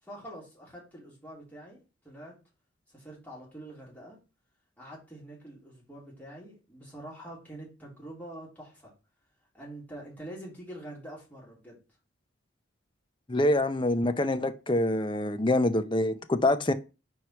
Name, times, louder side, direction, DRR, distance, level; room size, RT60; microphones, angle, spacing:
voice 1, 0.0-2.4 2.9-4.2 4.8-8.9 9.5-11.8, right 1 dB, 10° left, 3.0 m, -45 dB
voice 2, 13.3-16.7, left 1 dB, 25° left, 0.6 m, -25 dB
4.7 x 4.6 x 5.7 m
head